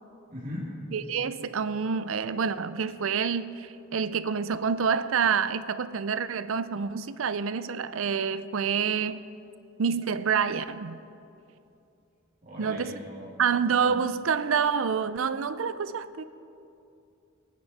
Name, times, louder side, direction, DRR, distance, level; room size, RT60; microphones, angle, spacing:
voice 1, 0.3-0.7 12.4-13.3 13.7-14.0, left 1 dB, 45° right, 2.4 m, -39 dB
voice 2, 0.9-9.2 9.8-11.0 12.6-12.9 13.4-16.2, right 6 dB, 75° right, 0.5 m, -27 dB
22.5 x 9.4 x 4.2 m
head